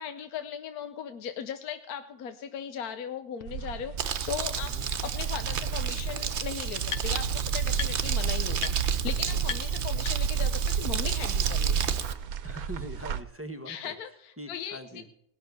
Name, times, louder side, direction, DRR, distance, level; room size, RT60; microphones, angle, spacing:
voice 1, 0.0-4.7 5.0-12.0 13.7-14.8, left 8 dB, 80° left, 9 dB, 1.3 m, -38 dB
sound 1, 3.4-3.5 4.1-4.2 5.5-5.6 5.8-7.4 7.7-8.2 8.6-8.7 9.0-9.1 9.4-10.5, left 7 dB, 60° left, 1.1 m, -38 dB
sound 2, 3.5-13.2, right 7 dB, 75° right, 1.2 m, -32 dB
Crumpling crinkling, 4.0-12.1, right 7 dB, 55° right, 1.0 m, -32 dB
voice 2, 12.4-13.9 14.4-15.1, equal, 10° right, 6 dB, 1.0 m, -42 dB
18.5 x 6.3 x 9.4 m, 0.76 s
omnidirectional pair, 1.6 m